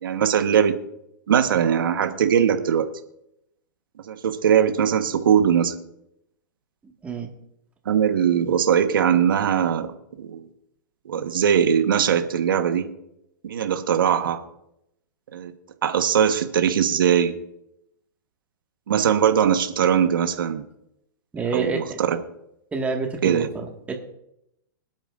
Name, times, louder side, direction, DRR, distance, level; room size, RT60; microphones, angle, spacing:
voice 1, 0.0-0.7 1.3-2.9 4.1-5.7 7.8-9.9 10.2-10.5 11.0-12.9 13.5-14.4 15.3-15.5 15.8-17.3 18.9-20.6 21.5-22.2 23.2-23.5, right 8 dB, 85° right, 7 dB, 1.3 m, -20 dB
voice 2, 21.3-21.8 22.7-23.9, right 4 dB, 10° right, 1 dB, 1.8 m, -28 dB
26.0 x 9.1 x 2.6 m, 0.81 s
hypercardioid pair, 140°, 11 cm